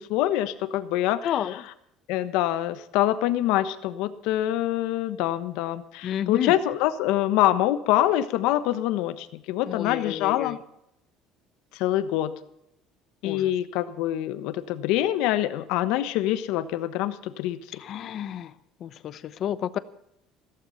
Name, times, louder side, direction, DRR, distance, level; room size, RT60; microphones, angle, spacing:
voice 1, 0.0-1.4 2.1-10.6 11.7-12.3 13.2-17.6, left 13 dB, 65° left, 12 dB, 1.2 m, -25 dB
voice 2, 1.2-1.6 6.0-6.6 9.7-10.6 13.2-13.6 17.8-18.5 18.8-19.8, left 10 dB, 40° left, 16 dB, 0.8 m, -30 dB
15.5 x 14.5 x 5.7 m, 0.78 s
cardioid pair, 175°, 0 cm